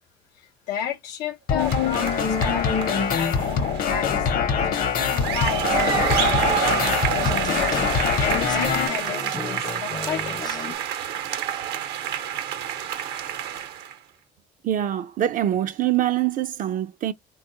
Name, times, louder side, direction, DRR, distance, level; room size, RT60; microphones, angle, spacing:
voice 1, 0.4-4.3 4.6-7.8 8.2-10.5, left 9 dB, 90° left, 0.6 m, -32 dB
sound 1, 1.5-8.9, left 6 dB, 55° left, 0.8 m, -23 dB
sound 2, 1.6-4.0 5.0-13.9, right 10 dB, 80° right, 0.8 m, -28 dB
sound 3, 5.7-10.8, left 5 dB, 25° left, 0.4 m, -35 dB
voice 2, 14.6-17.1, right 12 dB, 50° right, 0.4 m, -24 dB
3.6 x 2.3 x 2.7 m
cardioid pair, 110°, 17 cm